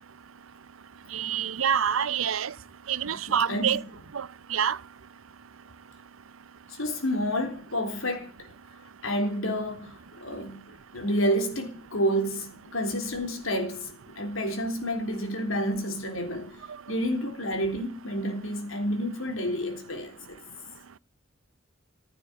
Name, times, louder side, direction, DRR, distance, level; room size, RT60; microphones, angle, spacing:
voice 1, 1.1-2.5 2.9-3.8 4.1-4.8, right 8 dB, 90° right, 0.7 m, -27 dB
voice 2, 6.7-8.5 9.0-16.6 16.9-20.4, equal, 85° left, 3.8 m, -30 dB
15.5 x 9.0 x 8.7 m
head